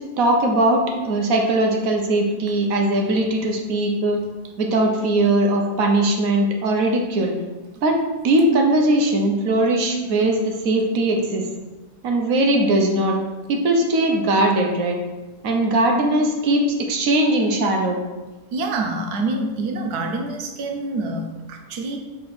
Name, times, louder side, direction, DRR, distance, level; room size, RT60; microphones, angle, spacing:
voice 1, 0.2-4.2 4.6-7.3 7.8-11.5 12.0-13.2 13.5-15.0 15.4-18.0, right 1 dB, 65° right, 1 dB, 1.3 m, -20 dB
voice 2, 18.5-22.0, right 2 dB, 90° right, 3 dB, 1.3 m, -26 dB
6.5 x 3.8 x 4.0 m, 1.2 s
omnidirectional pair, 1.6 m